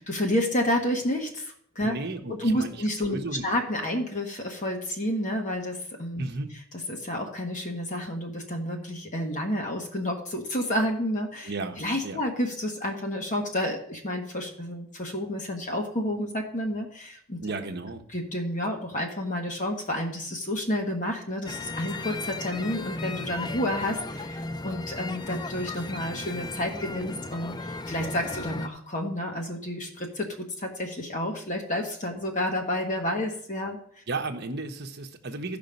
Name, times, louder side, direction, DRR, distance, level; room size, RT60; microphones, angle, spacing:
voice 1, 0.1-1.9 2.4-6.2 6.9-17.4 18.1-33.8, left 1 dB, 35° left, 1 dB, 1.4 m, -30 dB
voice 2, 1.8-3.5 6.2-6.5 11.4-11.8 12.0-12.2 17.4-18.0 34.1-35.6, right 2 dB, 50° right, 5 dB, 1.1 m, -34 dB
sound 1, 21.4-28.7, left 2 dB, 20° left, 0.5 m, -36 dB
14.5 x 5.2 x 5.3 m, 0.64 s
head